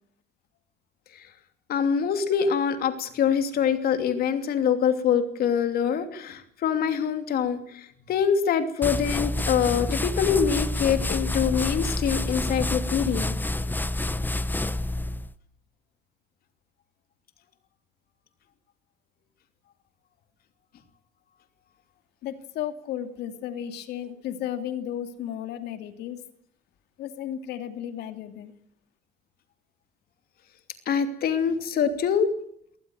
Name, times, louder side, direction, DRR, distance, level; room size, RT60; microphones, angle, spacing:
voice 1, 1.7-13.3 30.9-32.3, left 7 dB, 65° left, 8 dB, 2.9 m, -25 dB
sound 1, 8.8-15.3, left 2 dB, 10° left, 1.0 m, -28 dB
voice 2, 22.2-26.2 27.0-28.5, left 10 dB, 80° left, 8 dB, 2.6 m, -34 dB
22.5 x 19.0 x 7.8 m, 0.67 s
cardioid pair, 110°, 17 cm